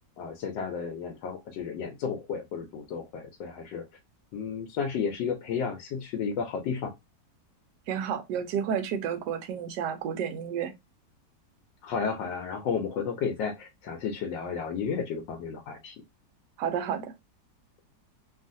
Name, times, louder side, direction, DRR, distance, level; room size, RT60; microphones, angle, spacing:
voice 1, 0.2-3.8 4.3-6.9 11.8-15.9, left 6 dB, 85° left, 1.3 m, -32 dB
voice 2, 7.9-10.7 16.6-17.1, right 8 dB, 75° right, 1.2 m, -31 dB
3.1 x 2.4 x 2.5 m
omnidirectional pair, 1.9 m